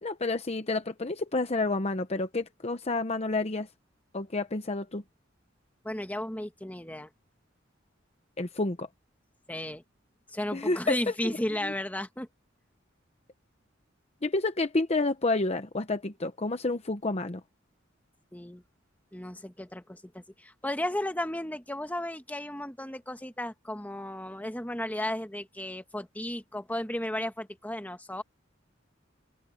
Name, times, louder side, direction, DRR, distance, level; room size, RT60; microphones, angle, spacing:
voice 1, 0.0-3.7 4.1-5.0 8.4-8.9 10.5-11.0 11.6-11.7 14.2-17.4, left 2 dB, 35° left, 0.9 m, -29 dB
voice 2, 5.8-7.1 9.5-9.8 10.3-12.3 18.3-18.6 19.1-28.2, left 1 dB, 10° left, 1.6 m, -34 dB
open air
head